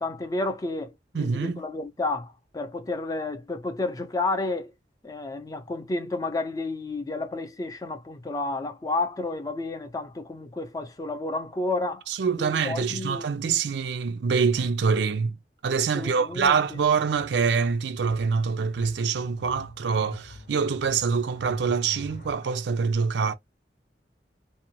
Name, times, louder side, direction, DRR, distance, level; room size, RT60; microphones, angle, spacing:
voice 1, 0.0-4.7 5.0-12.1 12.4-13.3 15.9-16.8, left 2 dB, 20° left, 0.4 m, -31 dB
voice 2, 1.1-1.6 12.1-15.4 15.6-23.3, right 5 dB, 80° right, 0.4 m, -25 dB
sound 1, 16.2-22.3, left 1 dB, 55° left, 0.7 m, -44 dB
2.6 x 2.0 x 3.0 m
head